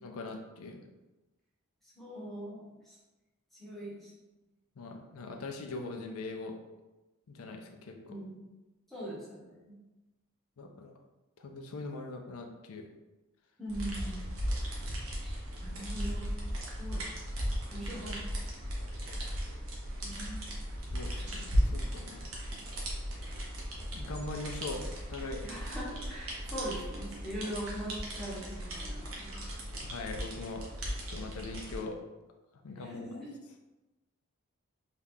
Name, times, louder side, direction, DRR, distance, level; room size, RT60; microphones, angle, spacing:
voice 1, 0.0-0.8 4.8-6.6 7.3-8.1 10.6-10.9 11.4-12.9 20.1-20.2 20.9-22.3 23.9-25.5 29.3-30.6 31.0-32.0 32.6-33.2, left 3 dB, 80° left, 3 dB, 0.5 m, -42 dB
voice 2, 2.0-3.0 3.5-4.1 8.1-8.4 8.9-9.7 13.6-14.2 15.2-15.3 15.6-16.3 16.8-17.0 17.7-18.2 20.0-20.4 25.4-29.4 32.8-33.3, right 1 dB, ahead, -7 dB, 0.9 m, -41 dB
sound 1, 13.7-31.8, equal, 65° right, 0.8 m, -36 dB
2.8 x 2.4 x 3.5 m, 1.1 s
head